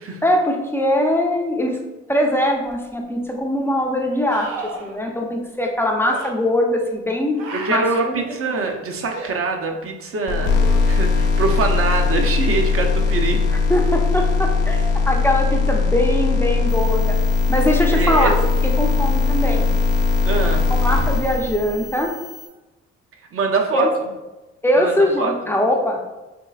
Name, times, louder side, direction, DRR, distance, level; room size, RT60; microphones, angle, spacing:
voice 1, 0.2-1.8 2.1-7.4 7.7-8.3 13.5-17.2 17.5-18.3 18.6-19.7 20.8-22.1 23.7-23.9 24.6-26.0, left 1 dB, 10° left, 1 dB, 0.5 m, -21 dB
sound 1, 2.7-2.8 4.3-5.0 6.0-6.3 7.4-8.1 9.1-9.3 10.5-11.2 14.4-14.5, right 4 dB, 90° right, 0.6 m, -34 dB
voice 2, 7.5-10.6 10.9-13.5 17.9-18.3 20.2-20.6 23.3-23.9 24.8-25.3, right 3 dB, 45° right, 3 dB, 0.7 m, -23 dB
sound 2, 10.3-21.9, left 4 dB, 80° left, 0.8 m, -19 dB
sound 3, 16.7-22.5, left 3 dB, 55° left, 0.9 m, -40 dB
4.4 x 3.2 x 2.3 m, 1.1 s
cardioid pair, 90°, 30 cm